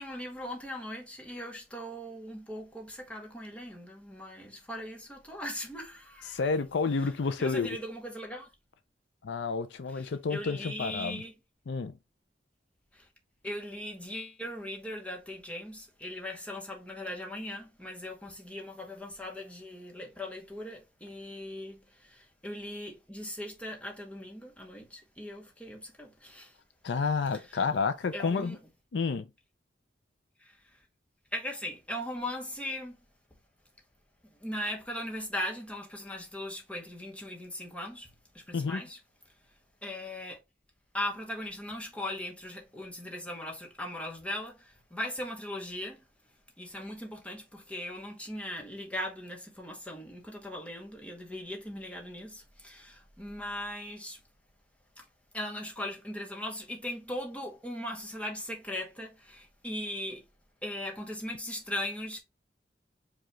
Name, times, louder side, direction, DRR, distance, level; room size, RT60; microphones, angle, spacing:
voice 1, 0.0-6.4 7.4-8.5 9.9-11.3 12.9-13.1 13.4-26.5 28.1-28.6 30.4-30.6 31.3-33.0 34.4-38.1 38.3-39.0 39.8-40.4 40.9-46.0 46.6-54.2 55.0-55.1 55.3-60.2 60.6-62.2, left 1 dB, 10° left, 1.0 m, -39 dB
voice 2, 6.3-7.8 9.2-11.2 11.7-11.9 26.8-28.6 28.9-29.3 38.5-38.8, left 4 dB, 75° left, 0.5 m, -30 dB
4.8 x 2.4 x 3.1 m
head